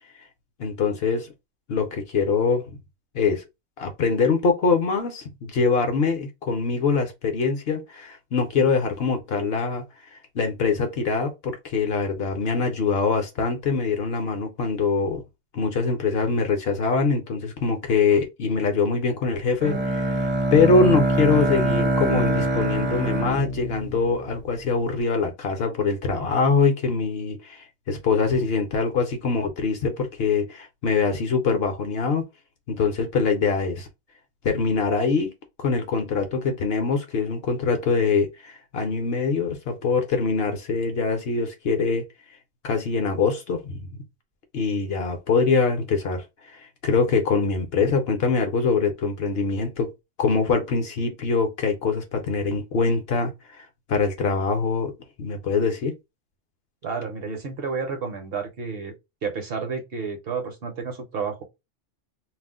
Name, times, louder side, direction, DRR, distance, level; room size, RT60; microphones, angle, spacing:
voice 1, 0.6-1.3 1.7-2.8 3.1-3.4 3.8-9.8 10.1-15.2 15.5-32.2 32.7-33.9 34.4-35.3 35.6-42.0 42.6-43.9 44.5-46.2 46.5-49.9 50.2-53.3 53.6-54.9 55.2-55.9, left 4 dB, 60° left, 0.8 m, -23 dB
Bowed string instrument, 19.6-24.6, right 1 dB, 15° right, 0.4 m, -24 dB
voice 2, 56.8-58.9 59.2-61.4, right 5 dB, 60° right, 0.8 m, -31 dB
2.4 x 2.0 x 3.5 m
omnidirectional pair, 1.3 m